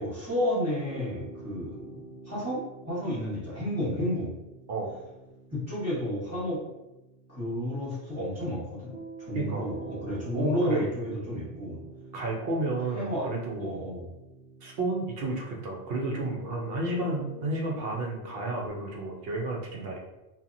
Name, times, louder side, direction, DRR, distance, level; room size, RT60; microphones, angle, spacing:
voice 1, 0.0-4.3 5.5-6.6 7.3-11.8 12.9-13.3 13.6-14.1, equal, 15° right, -9 dB, 0.9 m, -31 dB
sound 1, 0.9-18.7, right 1 dB, 50° left, 0.6 m, -47 dB
voice 2, 9.3-9.7 10.3-10.9 12.1-13.8 14.6-20.0, right 2 dB, 65° right, -1 dB, 0.6 m, -31 dB
2.8 x 2.2 x 2.5 m, 0.99 s
omnidirectional pair, 1.3 m